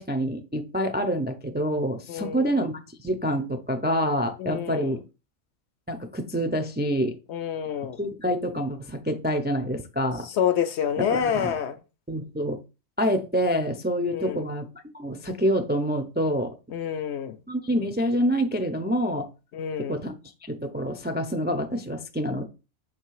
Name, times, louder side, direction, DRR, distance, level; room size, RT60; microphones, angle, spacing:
voice 1, 0.0-2.7 3.0-5.0 5.9-7.1 8.0-10.3 11.0-11.5 12.1-12.6 13.0-14.7 14.9-16.5 17.5-19.3 19.9-20.1 20.4-22.4, equal, 15° right, 0.3 m, -27 dB
voice 2, 2.1-2.5 4.4-5.0 7.3-8.0 10.2-11.8 14.0-14.4 16.7-17.4 19.5-20.0, left 8 dB, 65° left, 0.8 m, -28 dB
6.5 x 3.3 x 4.7 m
omnidirectional pair, 1.4 m